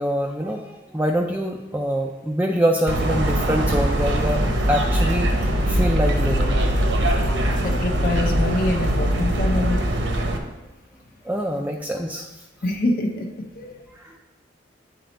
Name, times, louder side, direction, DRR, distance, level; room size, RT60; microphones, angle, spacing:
voice 1, 0.0-6.6 7.3-7.4 11.2-12.3 13.9-14.1, equal, 10° right, 1 dB, 0.3 m, -25 dB
sound 1, 2.9-10.4, right 1 dB, 75° right, 0.9 m, -21 dB
voice 2, 7.6-9.8 11.5-11.7 12.6-13.3 13.5-13.7, left 2 dB, 50° left, 3 dB, 0.7 m, -25 dB
8.2 x 4.2 x 4.0 m, 1.1 s
head